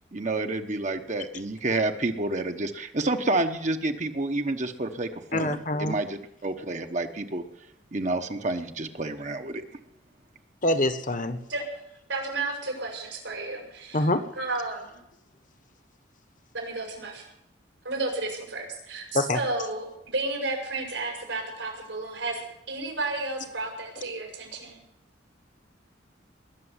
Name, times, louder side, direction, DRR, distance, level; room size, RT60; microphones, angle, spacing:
voice 1, 0.1-7.4 7.9-9.6, right 2 dB, 40° right, 6 dB, 1.0 m, -29 dB
voice 2, 5.3-6.0 10.6-11.4 13.9-14.2 19.1-19.4, left 1 dB, 45° left, 10 dB, 1.3 m, -25 dB
voice 3, 12.1-14.1 14.4-15.0 16.5-17.2 17.8-24.8, right 2 dB, 90° right, 1 dB, 6.3 m, -32 dB
20.5 x 6.9 x 9.7 m, 0.81 s
head